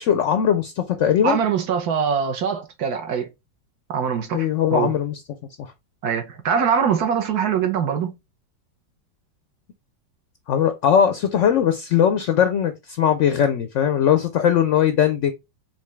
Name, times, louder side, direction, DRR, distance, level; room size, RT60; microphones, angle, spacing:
voice 1, 0.0-1.4 4.3-5.2 5.6-5.7 10.5-15.3, left 9 dB, 75° left, 0.7 m, -20 dB
voice 2, 1.2-3.3 3.9-4.9 6.0-8.1, right 7 dB, 65° right, 1.3 m, -23 dB
5.2 x 2.8 x 3.3 m
omnidirectional pair, 1.9 m